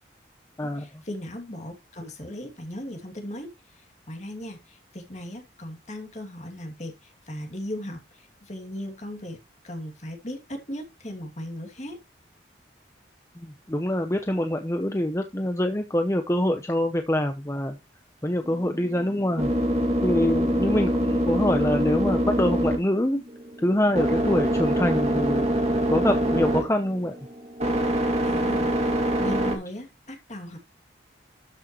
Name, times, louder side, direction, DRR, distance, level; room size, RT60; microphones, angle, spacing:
voice 1, 0.6-9.4 9.6-12.0 28.2-30.6, left 1 dB, 40° left, 2.6 m, -37 dB
voice 2, 13.4-17.8 18.2-19.5 20.0-23.2 23.6-25.5 25.9-27.1, left 1 dB, 15° left, 0.8 m, -25 dB
sound 1, 18.4-29.6, equal, 35° right, 2.3 m, -25 dB
12.5 x 6.4 x 3.1 m
head